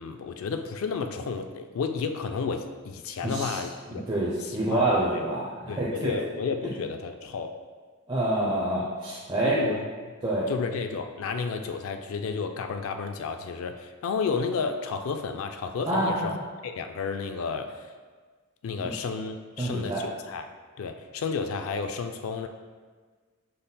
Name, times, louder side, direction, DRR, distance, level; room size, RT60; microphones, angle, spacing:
voice 1, 0.0-4.1 4.4-5.2 5.7-7.6 9.4-10.1 10.5-16.4 16.6-17.9 18.6-20.4 20.8-22.5, left 5 dB, 70° left, 6 dB, 0.3 m, -32 dB
voice 2, 3.2-3.6 3.9-6.1 8.1-9.7 10.2-10.5 15.9-16.4 18.8-18.9 19.6-20.0, right 1 dB, 25° right, -7 dB, 0.6 m, -27 dB
5.3 x 4.0 x 2.2 m, 1.5 s
head